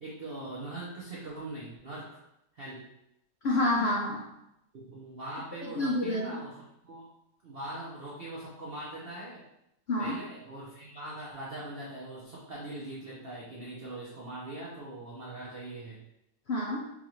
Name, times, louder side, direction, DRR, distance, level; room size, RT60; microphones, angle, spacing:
voice 1, 0.0-2.2 2.5-2.9 4.7-7.1 7.4-9.4 10.0-16.0, right 1 dB, 70° right, -6 dB, 0.5 m, -41 dB
voice 2, 3.4-4.3 5.6-6.4 9.9-10.2 16.5-16.9, left 1 dB, 80° left, -3 dB, 0.5 m, -28 dB
5.2 x 2.4 x 3.0 m, 0.84 s
omnidirectional pair, 2.0 m